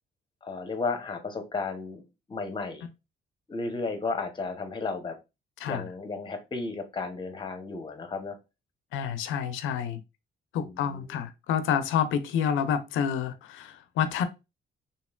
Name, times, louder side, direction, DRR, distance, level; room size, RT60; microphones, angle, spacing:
voice 1, 0.4-2.0 2.3-2.9 3.5-5.2 5.7-8.4 10.6-11.1, left 4 dB, 25° left, 0.8 m, -33 dB
voice 2, 8.9-10.0 10.5-14.3, left 8 dB, 85° left, 0.5 m, -28 dB
3.0 x 2.7 x 2.2 m
cardioid pair, 90°, 20 cm